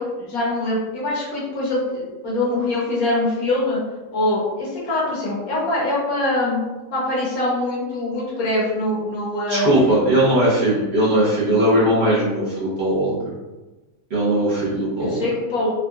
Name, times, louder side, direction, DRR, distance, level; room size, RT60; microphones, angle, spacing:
voice 1, 0.0-3.8 4.1-6.6 6.9-10.1 15.0-15.7, left 2 dB, 60° left, -5 dB, 1.2 m, -23 dB
voice 2, 9.5-13.1 14.1-15.2, right 1 dB, 45° right, -10 dB, 1.0 m, -19 dB
3.8 x 2.4 x 2.2 m, 1.1 s
omnidirectional pair, 1.8 m